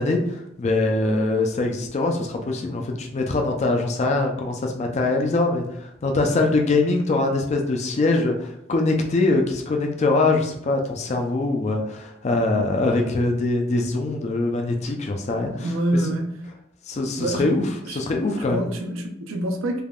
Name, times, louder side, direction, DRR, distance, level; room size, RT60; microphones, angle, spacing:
voice 1, 0.0-15.7 16.9-17.7 18.0-18.6, left 2 dB, 35° left, 3 dB, 0.3 m, -23 dB
voice 2, 15.6-16.4 17.2-17.5 17.8-18.0 18.5-19.8, right 1 dB, 80° right, 4 dB, 0.5 m, -26 dB
3.3 x 2.2 x 2.3 m, 0.78 s
head